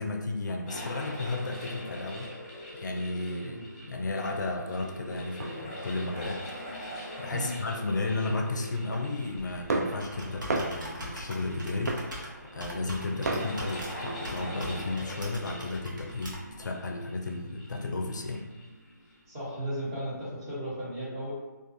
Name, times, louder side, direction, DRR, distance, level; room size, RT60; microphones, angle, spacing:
voice 1, 0.0-2.3 2.7-6.4 7.2-12.0 12.5-18.5, left 2 dB, 70° left, 2 dB, 0.4 m, -33 dB
sound 1, 0.7-19.3, equal, 25° left, 0.9 m, -43 dB
sound 2, 5.4-6.7 7.1-7.6 7.9-15.0, right 2 dB, 55° right, 0.4 m, -37 dB
Computer keyboard, 9.4-16.7, equal, 80° right, 0.9 m, -43 dB
voice 2, 19.3-21.3, equal, 20° right, -10 dB, 1.0 m, -35 dB
2.4 x 2.4 x 2.5 m, 1.2 s
hypercardioid pair, 165°, 10 cm